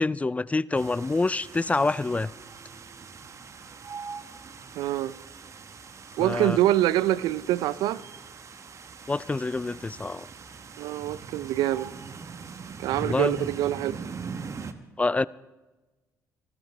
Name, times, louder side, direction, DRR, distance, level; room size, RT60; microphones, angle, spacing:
voice 1, 0.0-2.3 6.2-6.6 9.1-10.3 13.0-13.5 15.0-15.3, left 3 dB, 20° left, 0.4 m, -26 dB
sound 1, 0.7-14.7, right 5 dB, 45° right, 1.1 m, -42 dB
voice 2, 4.8-5.2 6.2-8.0 10.8-11.9 12.8-14.0, right 14 dB, 75° right, 0.4 m, -25 dB
25.5 x 13.0 x 3.3 m
supercardioid pair, 60°, 7 cm